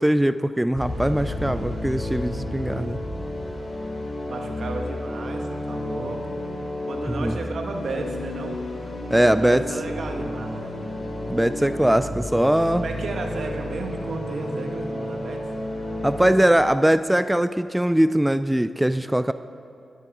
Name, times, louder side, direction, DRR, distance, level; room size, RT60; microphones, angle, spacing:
voice 1, 0.0-3.0 7.1-7.4 9.1-9.6 11.3-12.9 16.0-19.3, right 1 dB, 10° right, 12 dB, 0.4 m, -21 dB
sound 1, 0.7-16.3, left 1 dB, 50° left, 3.6 m, -31 dB
voice 2, 4.3-6.4 6.9-8.6 9.2-11.1 12.8-15.4, right 3 dB, 70° right, 3 dB, 1.5 m, -33 dB
12.0 x 12.0 x 4.9 m, 2.6 s
cardioid pair, 50°, 0 cm